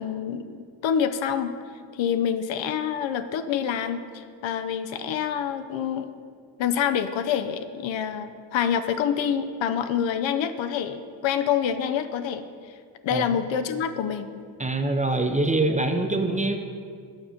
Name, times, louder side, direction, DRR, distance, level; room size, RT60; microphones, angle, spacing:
voice 1, 0.0-1.5 1.9-6.1 6.6-12.5 13.0-14.3, left 8 dB, 70° left, 9 dB, 0.6 m, -27 dB
voice 2, 14.6-16.6, right 2 dB, 15° right, 6 dB, 0.5 m, -24 dB
7.1 x 5.0 x 5.7 m, 2.1 s
cardioid pair, 75°, 48 cm